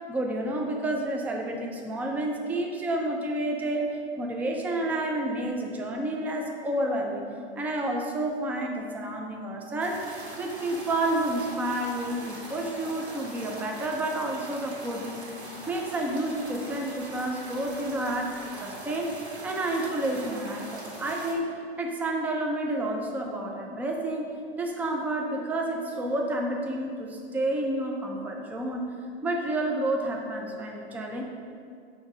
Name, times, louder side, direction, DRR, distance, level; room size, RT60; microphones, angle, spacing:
voice 1, 0.1-3.9 4.2-7.3 7.6-10.0 10.4-18.3 18.6-19.1 19.4-21.5 21.8-24.3 24.6-28.9 29.2-31.2, right 1 dB, 5° right, 1 dB, 0.4 m, -30 dB
sound 1, 9.8-21.3, right 1 dB, 90° right, 1.5 m, -42 dB
7.0 x 2.8 x 4.8 m, 2.4 s
hypercardioid pair, 115°, 32 cm